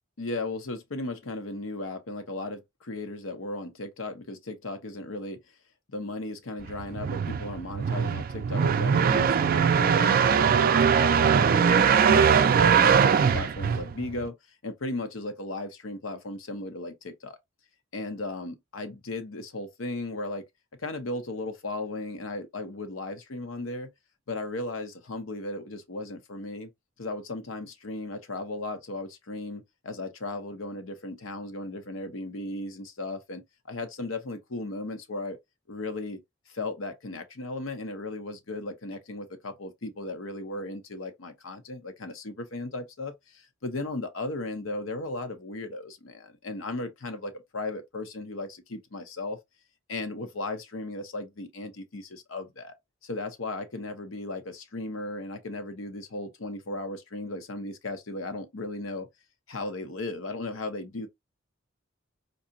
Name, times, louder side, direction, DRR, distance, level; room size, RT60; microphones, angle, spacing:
voice 1, 0.2-5.4 5.9-14.3 14.6-17.4 17.9-20.4 20.8-23.9 24.3-26.7 27.0-35.4 35.7-36.2 36.5-49.4 49.9-52.7 53.0-59.1 59.5-61.1, left 2 dB, 75° left, 0.9 m, -36 dB
sound 1, 6.7-14.3, right 7 dB, 45° right, 0.4 m, -21 dB
3.9 x 2.8 x 2.6 m
head